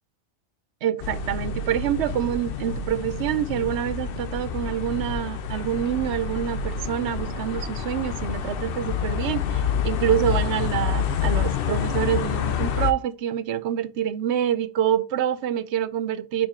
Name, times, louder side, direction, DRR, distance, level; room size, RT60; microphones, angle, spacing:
voice 1, 0.8-16.5, right 10 dB, 85° right, 0.9 m, -26 dB
sound 1, 1.0-12.9, left 7 dB, 60° left, 0.8 m, -28 dB
4.7 x 4.7 x 4.4 m
omnidirectional pair, 1.1 m